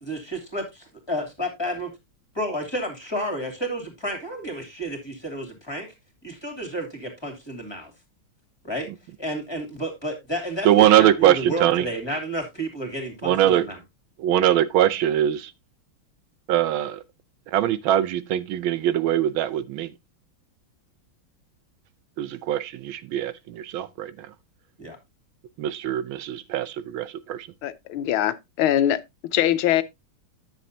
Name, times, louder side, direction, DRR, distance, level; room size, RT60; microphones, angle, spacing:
voice 1, 0.0-1.9 2.3-5.9 6.2-7.9 8.6-8.9 9.2-13.8 24.8-25.0, right 1 dB, 10° left, 2.6 m, -31 dB
voice 2, 10.6-11.8 13.2-13.7 14.2-15.5 16.5-17.0 17.5-19.9 22.2-24.3 25.6-27.5, right 12 dB, 80° right, 1.4 m, -22 dB
voice 3, 27.6-29.0 29.3-29.8, left 11 dB, 85° left, 1.6 m, -22 dB
10.5 x 7.4 x 2.7 m
omnidirectional pair, 2.2 m